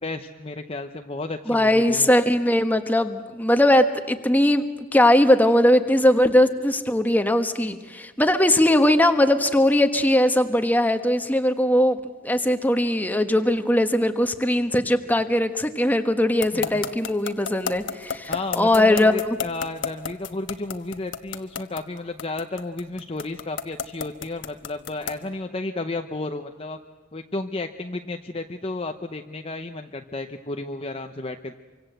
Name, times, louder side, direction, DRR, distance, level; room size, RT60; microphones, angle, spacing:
voice 1, 0.0-2.1 16.5-16.9 18.3-26.8 27.1-31.5, left 2 dB, 30° left, 5 dB, 0.7 m, -32 dB
voice 2, 1.5-4.6 4.9-12.0 12.2-19.4, left 1 dB, 10° left, 7 dB, 1.3 m, -20 dB
sound 1, 16.4-25.3, left 6 dB, 60° left, 1.3 m, -30 dB
26.5 x 25.0 x 7.9 m, 1.3 s
head